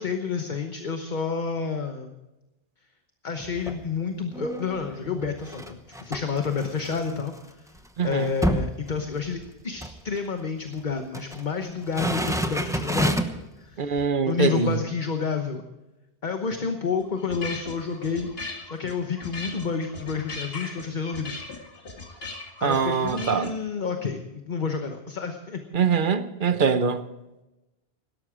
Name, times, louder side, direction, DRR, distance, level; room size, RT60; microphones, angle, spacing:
voice 1, 0.0-2.1 3.2-7.3 8.0-15.6 16.2-21.4 22.6-25.6, left 5 dB, 50° left, 1.2 m, -30 dB
sound 1, 3.4-3.9 4.3-7.4 7.8-7.9 8.1-9.5 9.8-10.0 10.8-11.4 11.8-13.5 14.0-14.1, right 1 dB, 5° right, 0.9 m, -29 dB
voice 2, 8.0-8.3 13.8-14.7 22.6-23.5 25.7-27.0, right 6 dB, 55° right, 1.0 m, -23 dB
sound 2, 17.0-23.5, left 3 dB, 70° left, 2.3 m, -38 dB
17.5 x 12.5 x 4.9 m
omnidirectional pair, 1.0 m